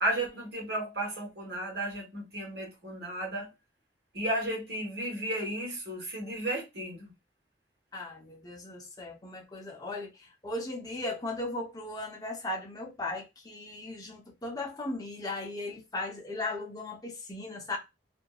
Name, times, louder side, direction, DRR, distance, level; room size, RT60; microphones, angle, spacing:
voice 1, 0.0-3.5 4.1-7.1, right 1 dB, 65° right, 1.6 m, -33 dB
voice 2, 7.9-17.8, left 2 dB, 20° left, 0.7 m, -37 dB
2.8 x 2.6 x 2.3 m
head